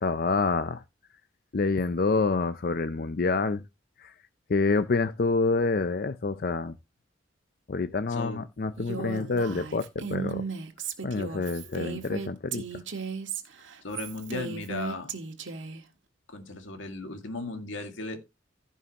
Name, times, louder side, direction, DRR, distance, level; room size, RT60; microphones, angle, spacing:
voice 1, 0.0-0.8 1.5-3.6 4.0-4.1 4.5-6.7 7.7-10.5 11.0-12.8, left 3 dB, 50° left, 0.5 m, -27 dB
voice 2, 8.1-8.4 13.8-15.1 16.3-18.2, left 2 dB, 85° left, 2.1 m, -36 dB
Female speech woman speaking, 8.8-15.8, right 5 dB, 80° right, 1.7 m, -36 dB
15.5 x 5.5 x 2.9 m
head